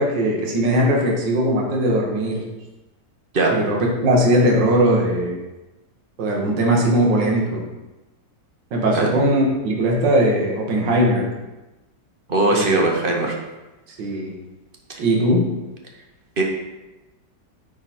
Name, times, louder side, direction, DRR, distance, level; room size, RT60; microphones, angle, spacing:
voice 1, 0.0-2.4 3.5-3.8 4.0-5.4 6.2-7.6 8.7-11.3 12.5-12.8 14.0-14.3 15.0-15.4, right 1 dB, 90° right, -1 dB, 1.9 m, -19 dB
voice 2, 12.3-13.3 14.9-15.0 16.4-16.5, right 2 dB, 40° right, 0 dB, 1.0 m, -19 dB
9.6 x 3.9 x 4.2 m, 1.0 s
omnidirectional pair, 1.9 m